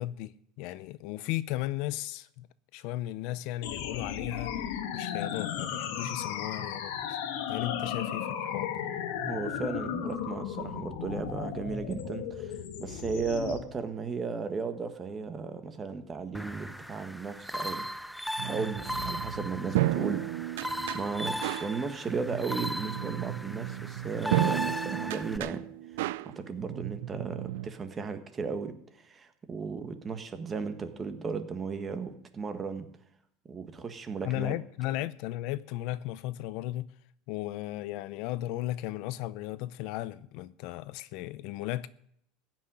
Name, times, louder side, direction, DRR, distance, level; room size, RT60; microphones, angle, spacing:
voice 1, 0.0-2.5 2.7-4.5 4.9-7.2 7.5-8.7 34.2-36.9 37.3-41.9, left 15 dB, 60° left, 0.5 m, -35 dB
sound 1, 3.6-13.6, left 9 dB, 75° left, 1.9 m, -35 dB
voice 2, 9.3-17.8 18.4-20.4 20.9-25.6 26.0-32.9 33.5-34.5, right 5 dB, 20° right, 1.5 m, -35 dB
sound 2, 16.3-25.4, equal, ahead, 0.5 m, -37 dB
sound 3, 18.4-27.7, right 16 dB, 85° right, 0.5 m, -33 dB
15.5 x 6.3 x 10.0 m
supercardioid pair, 140°, 0 cm